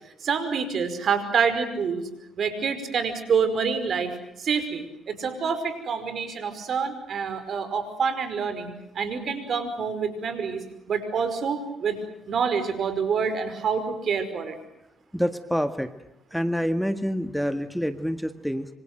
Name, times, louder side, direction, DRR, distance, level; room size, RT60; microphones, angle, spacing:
voice 1, 0.2-2.0 2.4-4.1 4.4-10.6 10.9-12.0 12.3-14.6, right 6 dB, 60° right, 10 dB, 5.3 m, -27 dB
voice 2, 15.1-15.9 16.3-18.7, equal, ahead, 9 dB, 1.8 m, -27 dB
26.0 x 26.0 x 7.8 m, 0.84 s
hypercardioid pair, 50°, 0 cm